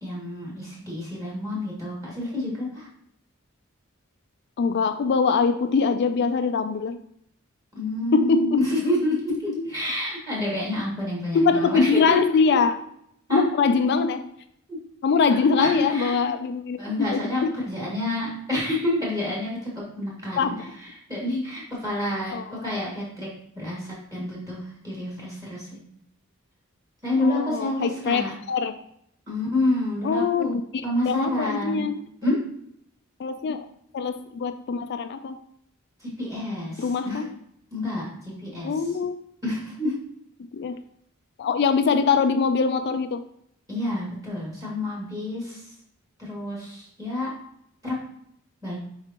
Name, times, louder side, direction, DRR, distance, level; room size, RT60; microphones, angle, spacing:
voice 1, 0.0-2.9 7.7-9.2 9.7-12.2 13.3-13.4 14.7-14.8 15.3-16.1 16.8-19.7 20.0-20.5 21.1-22.3 22.6-23.3 23.6-25.8 27.0-28.3 29.3-30.5 30.8-31.9 32.2-32.4 36.0-37.2 37.7-38.7 39.4-39.9 43.7-45.6 46.2-47.3 47.8-47.9 48.6-48.8, left 1 dB, 15° right, -5 dB, 2.1 m, -28 dB
voice 2, 4.6-7.0 8.1-8.8 9.3-9.7 11.3-12.8 13.3-14.3 15.0-17.5 20.3-20.8 22.3-22.7 27.2-28.7 30.0-32.0 33.2-33.7 33.9-35.3 36.8-37.4 38.6-39.2 40.5-40.8 41.4-43.2, left 5 dB, 55° left, 9 dB, 0.4 m, -23 dB
6.9 x 4.8 x 2.9 m, 0.71 s
head